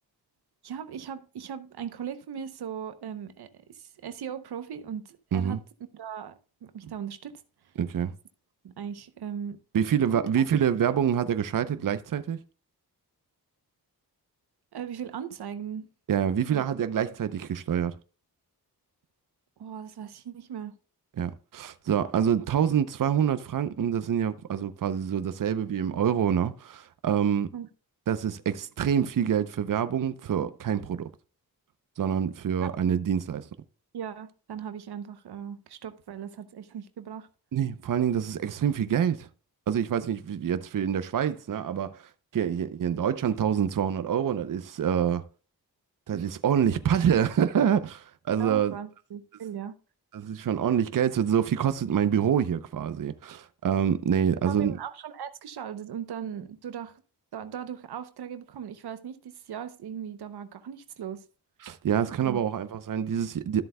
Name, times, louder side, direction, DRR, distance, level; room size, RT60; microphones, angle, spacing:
voice 1, 0.6-5.6 5.9-7.4 8.6-9.6 14.7-15.9 16.5-16.6 19.6-20.8 27.5-27.7 32.6-32.7 33.9-37.3 46.1-46.3 48.4-49.7 54.5-57.0 57.3-61.2 62.2-62.4, right 8 dB, 90° right, 0.8 m, -38 dB
voice 2, 7.8-8.1 9.7-12.4 16.1-18.0 21.2-27.5 28.1-31.1 32.0-33.4 37.5-39.3 39.7-45.2 46.1-48.8 50.1-54.7 61.6-63.6, right 8 dB, 55° right, 0.7 m, -26 dB
13.0 x 7.6 x 2.2 m
wide cardioid pair, 80°, 38 cm